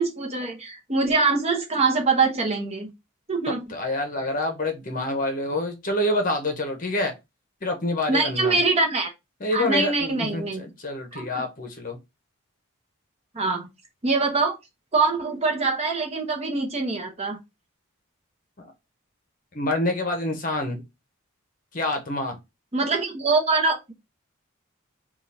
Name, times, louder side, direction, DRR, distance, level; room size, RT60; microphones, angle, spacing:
voice 1, 0.0-2.9 3.3-3.6 8.1-9.1 9.5-10.6 11.1-11.4 13.3-13.7 14.0-14.6 14.9-17.4 22.7-23.9, right 3 dB, 30° right, 0.9 m, -24 dB
voice 2, 3.7-7.1 7.6-8.6 9.4-12.0 19.5-20.8 21.7-22.4, left 1 dB, 40° left, 0.8 m, -27 dB
3.6 x 2.4 x 4.1 m
head